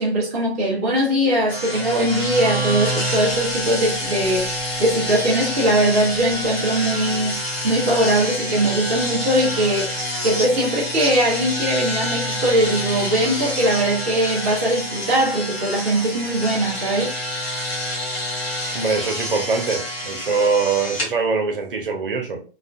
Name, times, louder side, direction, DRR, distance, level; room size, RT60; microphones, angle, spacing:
voice 1, 0.0-9.9 10.2-17.2, right 1 dB, 15° right, 0.5 m, -21 dB
sound 1, 1.5-21.1, left 1 dB, 30° left, 1.5 m, -27 dB
voice 2, 18.7-22.4, right 4 dB, 55° right, 0.8 m, -23 dB
3.4 x 2.4 x 2.4 m
figure-of-eight pair, 135°, 33 cm